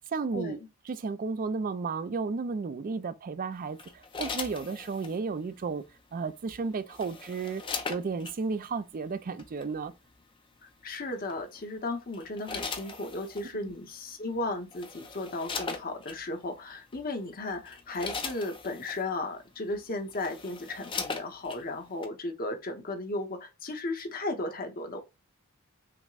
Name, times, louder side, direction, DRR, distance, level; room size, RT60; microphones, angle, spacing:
voice 1, 0.1-0.6 0.9-5.8 6.1-7.6 7.9-9.9, right 4 dB, 40° right, 0.4 m, -33 dB
sound 1, 3.8-5.2 6.5-8.4 9.4-9.6 11.3-11.6 12.1-13.5 14.3-14.4 14.7-16.2 16.9-17.1 17.5-19.0 19.7-19.8 20.1-21.6 22.0-22.1, left 4 dB, 25° left, 0.5 m, -38 dB
voice 2, 10.6-25.0, left 2 dB, 40° left, 0.8 m, -35 dB
5.8 x 2.1 x 2.3 m
head